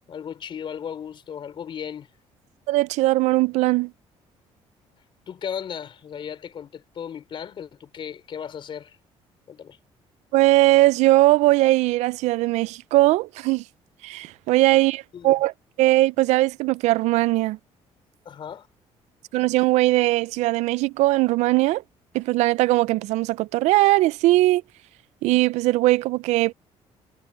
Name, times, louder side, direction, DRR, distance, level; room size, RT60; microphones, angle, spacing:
voice 1, 0.1-2.1 5.3-9.0 9.5-9.8 15.1-15.4 18.2-18.7, left 8 dB, 45° left, 4.4 m, -36 dB
voice 2, 2.7-3.9 10.3-13.6 14.0-15.5 15.8-17.6 19.3-21.8 22.1-24.6 25.2-26.5, right 18 dB, 85° right, 0.4 m, -20 dB
cardioid pair, 120°, 11 cm